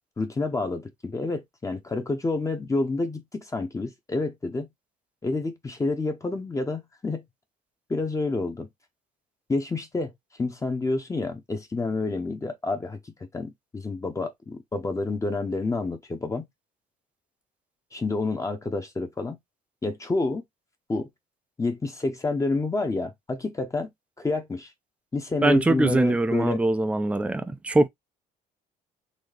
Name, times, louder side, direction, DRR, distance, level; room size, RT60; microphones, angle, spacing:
voice 1, 0.2-4.7 5.2-7.2 7.9-8.7 9.5-10.1 10.4-16.4 17.9-19.4 19.8-20.4 20.9-21.1 21.6-23.9 24.2-24.7 25.1-26.6, left 3 dB, 20° left, 0.8 m, -28 dB
voice 2, 25.4-27.9, right 2 dB, 5° right, 0.4 m, -22 dB
4.1 x 2.7 x 3.2 m
cardioid pair, 110°, 17 cm